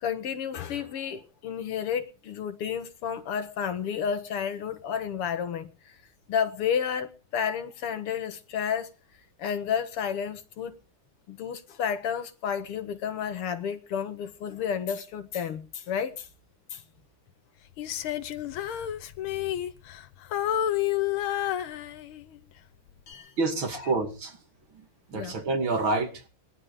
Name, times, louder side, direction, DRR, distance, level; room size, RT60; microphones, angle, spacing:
voice 1, 0.0-6.0 6.3-8.9 9.4-10.7 11.3-16.3 16.7-16.8 23.1-23.3 23.7-23.9 25.1-25.3, left 7 dB, 90° left, 2.4 m, -31 dB
Female singing, 17.8-20.1 20.3-22.4 22.9-23.1, left 12 dB, 75° left, 1.7 m, -30 dB
voice 2, 23.4-24.4 25.1-26.1, right 3 dB, 65° right, 3.1 m, -27 dB
19.5 x 12.0 x 5.1 m
omnidirectional pair, 2.4 m